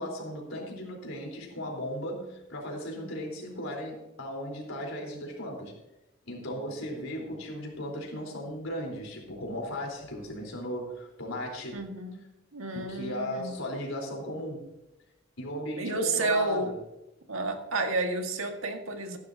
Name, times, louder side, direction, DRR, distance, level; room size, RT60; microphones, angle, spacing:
voice 1, 0.0-5.7 6.3-11.8 12.7-14.7 15.4-16.8, left 1 dB, 80° left, 0 dB, 4.0 m, -36 dB
voice 2, 11.7-12.2 12.5-13.6 15.8-16.7 17.3-19.2, right 3 dB, 85° right, 4 dB, 1.8 m, -31 dB
15.0 x 12.0 x 2.8 m, 0.95 s
head